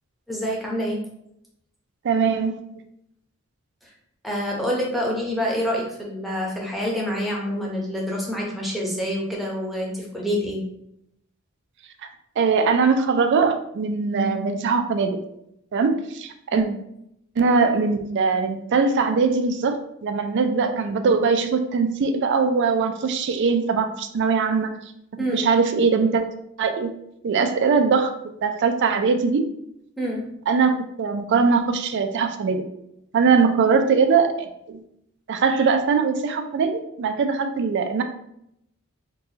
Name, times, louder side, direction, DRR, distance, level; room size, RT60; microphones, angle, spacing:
voice 1, 0.3-1.1 4.2-10.6 16.5-16.7 25.2-25.5 30.0-30.3, equal, ahead, -3 dB, 0.7 m, -27 dB
voice 2, 2.0-2.8 12.4-15.2 15.7-16.6 17.4-19.8 20.0-24.7 25.2-26.3 26.6-26.9 27.2-28.1 28.4-29.5 30.5-32.6 33.1-34.8 35.3-38.0, right 5 dB, 55° right, 7 dB, 0.4 m, -21 dB
3.9 x 2.3 x 2.8 m, 0.78 s
head